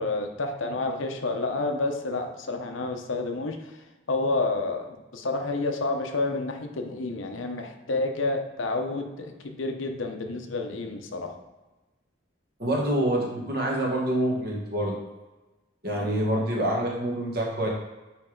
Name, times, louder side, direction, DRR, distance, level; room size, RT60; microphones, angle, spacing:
voice 1, 0.0-3.6 4.1-11.4, left 2 dB, 85° left, 4 dB, 0.9 m, -29 dB
voice 2, 12.6-15.0 15.8-17.7, right 1 dB, 50° right, -2 dB, 1.5 m, -26 dB
9.1 x 3.4 x 3.9 m, 1.1 s
head